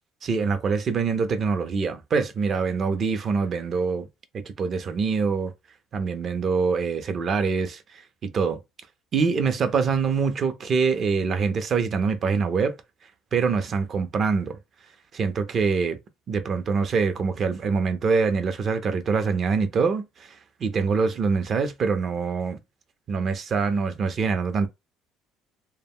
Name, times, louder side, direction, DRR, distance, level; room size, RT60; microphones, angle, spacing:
voice 1, 0.2-4.1 4.3-5.5 5.9-7.8 8.3-8.6 9.1-12.7 13.3-14.6 15.1-16.0 16.3-22.6 23.1-24.7, right 5 dB, 45° right, 0.5 m, -24 dB
2.1 x 2.1 x 3.5 m
cardioid pair, 105°, 0 cm